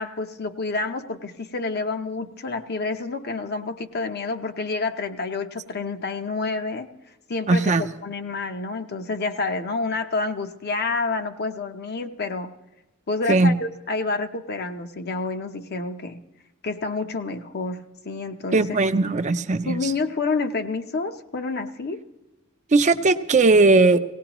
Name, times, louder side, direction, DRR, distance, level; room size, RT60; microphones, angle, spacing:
voice 1, 0.0-6.9 7.3-7.7 8.0-12.5 13.1-16.2 16.6-18.7 19.6-22.0, left 3 dB, 50° left, 7 dB, 0.7 m, -28 dB
voice 2, 7.5-7.8 13.3-13.5 18.5-19.9 22.7-24.0, right 3 dB, 35° right, 9 dB, 0.5 m, -18 dB
18.0 x 18.0 x 3.0 m, 1.0 s
head